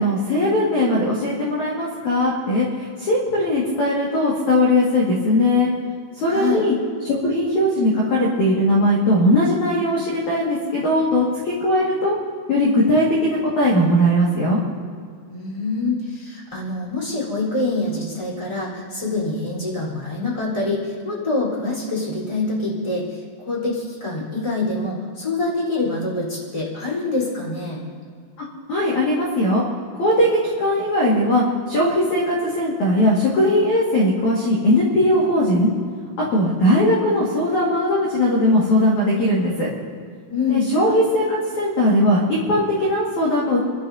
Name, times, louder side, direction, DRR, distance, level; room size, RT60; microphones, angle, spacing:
voice 1, 0.0-5.7 6.2-6.7 7.0-12.1 12.5-14.6 28.4-29.6 29.9-35.7 36.3-39.7 40.5-43.6, left 1 dB, 50° left, -5 dB, 2.7 m, -19 dB
voice 2, 6.3-6.6 15.3-27.8 40.3-40.7, left 3 dB, 5° left, -6 dB, 3.5 m, -25 dB
29.5 x 12.5 x 2.8 m, 2.1 s
omnidirectional pair, 5.7 m